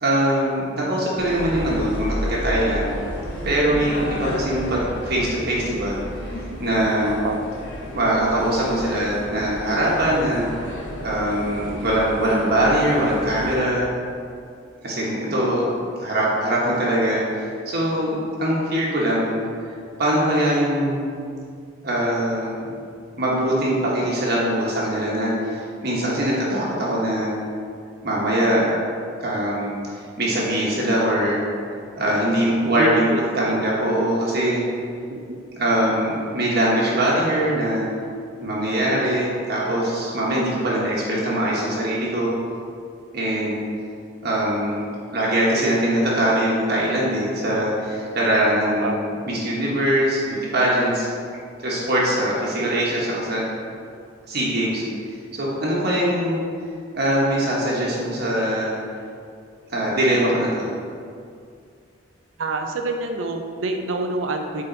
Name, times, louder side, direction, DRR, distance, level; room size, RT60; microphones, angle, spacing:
voice 1, 0.0-2.9 3.4-6.0 6.3-7.2 7.9-10.5 11.0-13.9 14.8-15.7 16.0-19.7 20.0-21.1 21.8-22.8 23.2-27.3 28.0-28.9 29.2-29.7 30.2-31.4 32.0-34.6 35.6-37.9 38.4-42.3 43.1-43.6 44.2-44.8 45.1-49.0 49.3-51.1 51.6-53.4 54.3-54.8 55.3-56.4 56.9-58.7 59.7-60.7, right 1 dB, 55° right, -5 dB, 1.2 m, -22 dB
sound 1, 1.2-13.6, equal, 90° left, 1.6 m, -32 dB
voice 2, 32.7-33.6 35.1-35.4 48.8-49.0 62.4-64.6, right 2 dB, 80° right, 4 dB, 0.5 m, -26 dB
8.6 x 3.8 x 3.9 m, 2.3 s
head